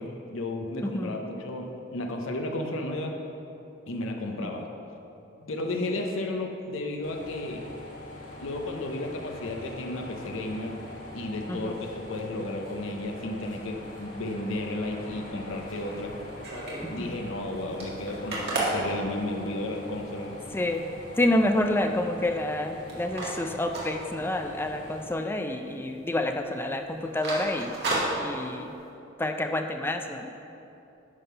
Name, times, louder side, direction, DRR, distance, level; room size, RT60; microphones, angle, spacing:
voice 1, 0.0-3.2 3.9-4.7 5.4-7.7 8.4-10.8 11.1-16.2 16.9-20.3, left 1 dB, 75° left, 2 dB, 0.7 m, -33 dB
voice 2, 0.8-1.2 11.5-11.8 16.8-17.2 20.5-20.9 21.2-27.8 28.2-28.7 29.2-30.3, left 1 dB, 10° left, 6 dB, 0.3 m, -28 dB
sound 1, 7.0-25.0, left 1 dB, 40° left, 1.7 m, -43 dB
sound 2, 15.6-17.0 17.3-17.4 17.6-19.8 20.3-20.4 20.7-21.2 21.6-22.6 22.9-24.7 24.9-25.1 25.5-25.9 26.2-26.4 26.8-28.8, right 2 dB, 55° right, 1.8 m, -33 dB
9.6 x 3.7 x 5.6 m, 2.8 s
head